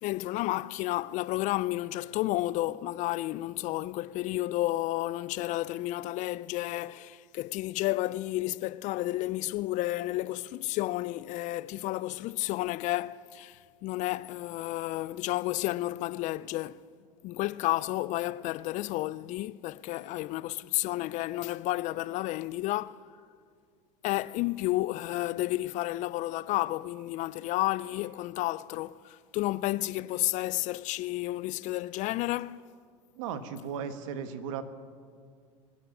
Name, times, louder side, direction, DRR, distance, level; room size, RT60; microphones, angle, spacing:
voice 1, 0.0-16.8 17.2-23.0 24.0-32.6, left 17 dB, 45° left, 0.4 m, -31 dB
voice 2, 33.2-34.6, right 7 dB, 70° right, 1.3 m, -36 dB
23.0 x 8.4 x 7.2 m
hypercardioid pair, 100°, 17 cm